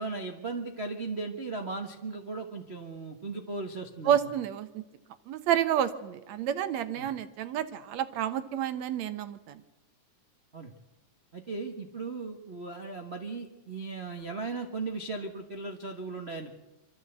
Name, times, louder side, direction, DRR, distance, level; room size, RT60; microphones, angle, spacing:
voice 1, 0.0-4.2 7.0-7.1 10.5-10.7 11.3-16.5, right 3 dB, 85° right, 3 dB, 0.5 m, -37 dB
voice 2, 4.1-4.8 5.3-9.6, right 10 dB, 70° right, 11 dB, 1.9 m, -29 dB
24.5 x 14.0 x 8.0 m, 1.1 s
omnidirectional pair, 3.7 m